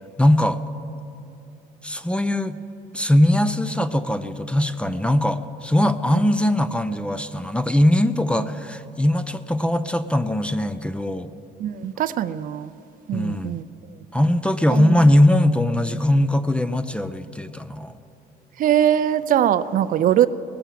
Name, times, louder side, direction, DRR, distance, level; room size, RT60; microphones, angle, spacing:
voice 1, 0.2-0.6 1.8-2.6 2.9-11.3 13.1-13.6 14.1-18.0, left 1 dB, 5° left, 12 dB, 0.4 m, -20 dB
voice 2, 11.6-12.7 13.1-13.7 14.7-14.9 18.6-20.3, right 10 dB, 55° right, 14 dB, 0.4 m, -21 dB
18.0 x 6.9 x 7.4 m, 2.8 s
cardioid pair, 110°, 17 cm